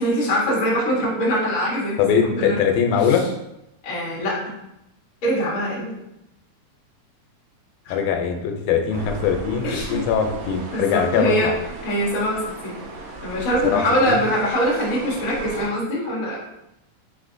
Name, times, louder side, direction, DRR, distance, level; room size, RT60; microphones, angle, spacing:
voice 1, 0.0-2.6 2.9-3.2 3.8-4.5 5.2-6.0 7.8-7.9 9.6-10.0 10.7-11.5 11.8-12.8 13.2-16.4, equal, 55° left, -5 dB, 0.9 m, -23 dB
voice 2, 2.0-3.3 7.9-11.5 13.6-14.2, left 7 dB, 85° left, 4 dB, 2.1 m, -21 dB
sound 1, 8.9-15.7, right 2 dB, 80° right, 1.9 m, -36 dB
4.8 x 3.6 x 2.5 m, 0.87 s
omnidirectional pair, 3.4 m